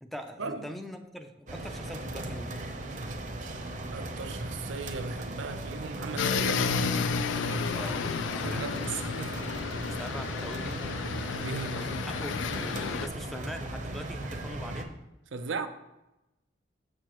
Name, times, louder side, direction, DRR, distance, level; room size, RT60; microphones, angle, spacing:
voice 1, 0.0-2.6 7.7-8.8 10.0-10.9 11.7-15.0, equal, ahead, 0.4 m, -42 dB
sound 1, 1.5-14.8, right 1 dB, 45° right, 0.7 m, -37 dB
voice 2, 3.9-7.2 8.4-9.6 11.4-11.8 15.3-15.7, right 4 dB, 90° right, 0.5 m, -37 dB
sound 2, 6.2-13.1, left 6 dB, 85° left, 0.3 m, -32 dB
6.7 x 6.5 x 3.0 m
head